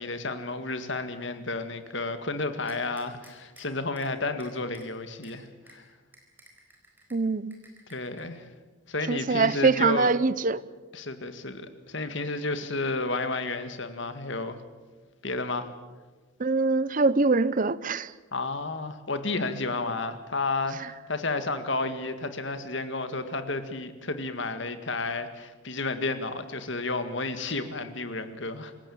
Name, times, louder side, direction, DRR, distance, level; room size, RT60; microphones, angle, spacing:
voice 1, 0.0-5.8 7.9-8.5 8.9-10.1 10.9-14.6 15.2-15.7 18.3-20.8 21.1-28.7, left 3 dB, 60° left, 9 dB, 2.0 m, -31 dB
sound 1, 2.7-3.6 4.0-4.1 4.4-4.9 5.2-5.3 5.7-5.8 6.1-7.2 7.5-8.2, right 2 dB, 10° right, 4.1 m, -53 dB
voice 2, 7.1-7.5 9.1-10.6 16.4-18.1, right 4 dB, 40° right, 17 dB, 0.7 m, -23 dB
26.5 x 16.5 x 8.7 m, 1.3 s
head